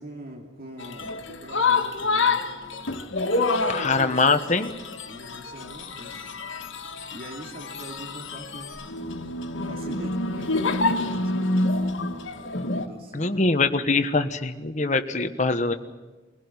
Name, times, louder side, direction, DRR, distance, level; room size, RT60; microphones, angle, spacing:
voice 1, 0.0-2.4 3.6-4.7 5.1-6.3 7.1-8.8 9.6-11.8 12.7-13.6 15.7-15.8, right 1 dB, 50° right, 1 dB, 2.6 m, -43 dB
sound 1, 0.8-12.9, left 3 dB, 90° left, 1.7 m, -27 dB
voice 2, 3.7-4.7 13.1-15.7, left 3 dB, 40° left, 8 dB, 1.3 m, -23 dB
23.0 x 16.5 x 9.8 m, 1.2 s
head